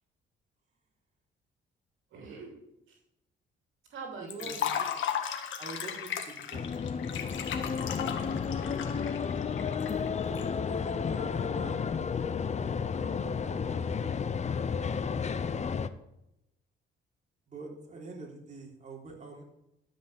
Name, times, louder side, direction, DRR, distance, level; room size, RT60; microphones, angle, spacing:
voice 1, 2.1-2.6 2.9-3.0 3.9-4.9, right 4 dB, 75° right, 1 dB, 2.6 m, -45 dB
voice 2, 4.2-4.9 5.6-6.8 10.6-11.8 13.0-13.9 17.5-19.4, right 3 dB, 35° right, -2 dB, 3.8 m, -46 dB
Liquid, 4.3-10.4, left 8 dB, 75° left, 1.6 m, -35 dB
sound 1, 6.5-15.9, left 6 dB, 35° left, 0.7 m, -32 dB
13.0 x 5.5 x 7.2 m, 0.87 s
cardioid pair, 90°, 20 cm